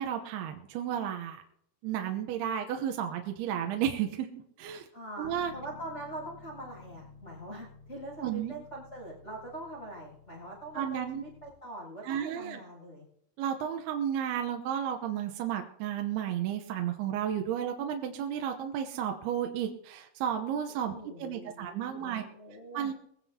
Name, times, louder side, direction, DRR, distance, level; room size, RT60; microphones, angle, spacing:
voice 1, 0.0-1.4 1.8-4.3 4.6-4.9 5.2-5.5 8.2-8.5 10.8-11.2 12.0-12.6 13.4-20.9 21.2-22.2 22.7-22.9, right 9 dB, 75° right, 4 dB, 2.8 m, -32 dB
voice 2, 4.9-13.0 20.9-22.9, right 1 dB, 15° left, -3 dB, 7.6 m, -43 dB
Bass guitar, 5.2-11.5, left 4 dB, 40° left, 2.1 m, -53 dB
22.0 x 16.0 x 2.8 m, 0.74 s
omnidirectional pair, 4.7 m